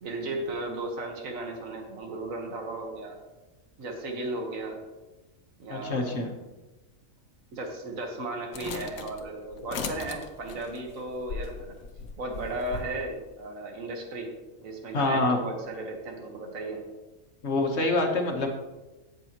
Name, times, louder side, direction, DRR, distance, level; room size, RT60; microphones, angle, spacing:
voice 1, 0.0-3.2 3.8-4.8 5.6-6.3 7.5-11.7 12.2-14.3 14.6-16.8, right 2 dB, 75° right, 2 dB, 1.8 m, -35 dB
voice 2, 5.7-6.3 14.9-15.4 17.4-18.5, left 2 dB, 55° left, 2 dB, 1.5 m, -26 dB
sound 1, 8.5-12.9, left 5 dB, 80° left, 1.3 m, -38 dB
16.5 x 6.2 x 3.0 m, 1.1 s
omnidirectional pair, 1.4 m